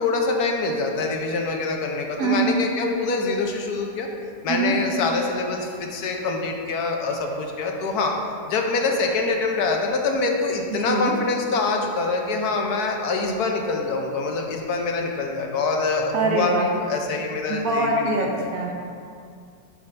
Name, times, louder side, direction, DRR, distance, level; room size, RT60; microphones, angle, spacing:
voice 1, 0.0-4.1 4.4-8.1 8.5-18.3, left 3 dB, 70° left, 2 dB, 1.2 m, -25 dB
voice 2, 2.2-2.5 4.5-4.7 10.8-11.1 16.1-16.7 17.5-18.7, right 3 dB, 65° right, 0 dB, 1.2 m, -23 dB
8.1 x 5.4 x 3.3 m, 2.3 s
omnidirectional pair, 1.7 m